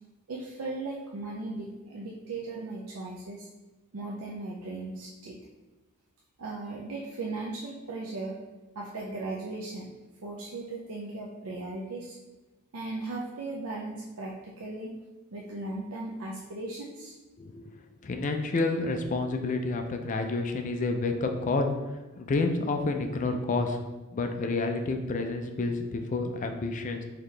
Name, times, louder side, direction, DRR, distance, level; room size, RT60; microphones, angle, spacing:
voice 1, 0.3-3.5 3.9-5.4 6.4-8.4 8.8-9.9 10.2-12.2 12.7-14.9 15.3-17.1, right 2 dB, 70° right, -3 dB, 0.5 m, -37 dB
voice 2, 18.0-21.7 22.2-23.8 24.1-27.0, left 3 dB, 35° left, 5 dB, 0.3 m, -29 dB
3.9 x 2.8 x 3.2 m, 1.2 s
head